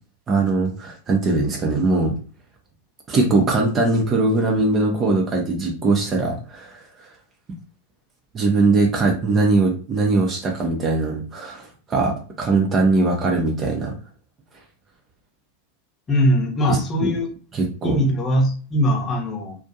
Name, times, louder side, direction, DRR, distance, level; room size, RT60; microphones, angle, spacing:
voice 1, 0.3-2.1 3.1-6.8 8.3-13.9 16.7-17.1 17.5-18.0, right 3 dB, 25° right, 1 dB, 0.5 m, -21 dB
voice 2, 16.1-17.3 17.8-19.6, equal, 20° left, -1 dB, 0.8 m, -20 dB
2.5 x 2.1 x 2.6 m, 0.39 s
figure-of-eight pair, 90°, 0 cm